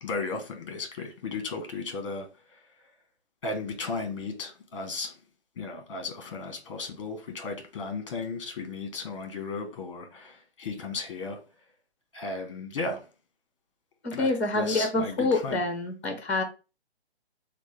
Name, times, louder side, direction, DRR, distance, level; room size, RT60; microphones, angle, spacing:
voice 1, 0.0-2.3 3.4-5.1 5.6-11.4 12.1-13.0 14.1-14.3 14.5-15.6, left 3 dB, 30° left, 1.0 m, -35 dB
voice 2, 14.0-16.4, left 2 dB, 10° left, 0.6 m, -27 dB
6.2 x 2.2 x 3.2 m
hypercardioid pair, 170°, 33 cm